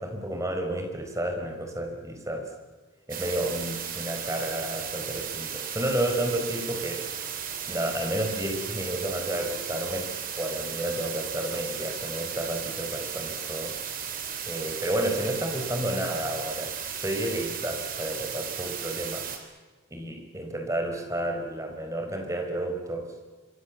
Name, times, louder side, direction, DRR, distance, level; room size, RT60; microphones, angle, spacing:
voice 1, 0.0-2.5 3.1-7.0 7.7-10.1 10.4-13.7 14.5-19.2 19.9-23.1, right 1 dB, 15° right, 3 dB, 4.5 m, -31 dB
sound 1, 3.1-19.4, right 8 dB, 45° right, 3.4 m, -35 dB
26.5 x 25.0 x 7.3 m, 1.4 s
head